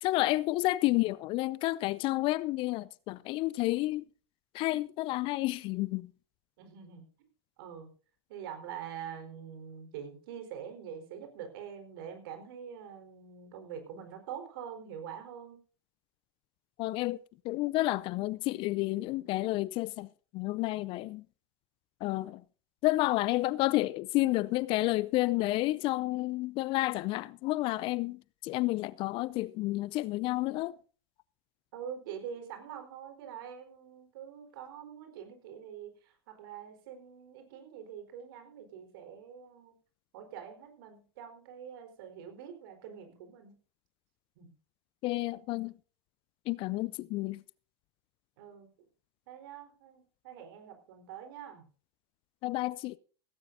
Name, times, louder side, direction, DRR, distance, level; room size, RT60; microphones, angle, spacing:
voice 1, 0.0-4.0 4.5-6.1 16.8-17.2 17.4-20.1 20.3-21.2 22.0-22.4 22.8-30.7 45.0-45.7 46.5-47.4 52.4-53.0, left 18 dB, 40° left, 0.5 m, -30 dB
voice 2, 6.6-7.0 7.6-7.9 8.3-15.6 31.7-39.7 40.1-43.6 44.4-44.5 46.6-46.9 48.4-48.7 49.3-51.7, right 8 dB, 60° right, 4.2 m, -45 dB
16.5 x 16.5 x 2.7 m
figure-of-eight pair, 90°, 14 cm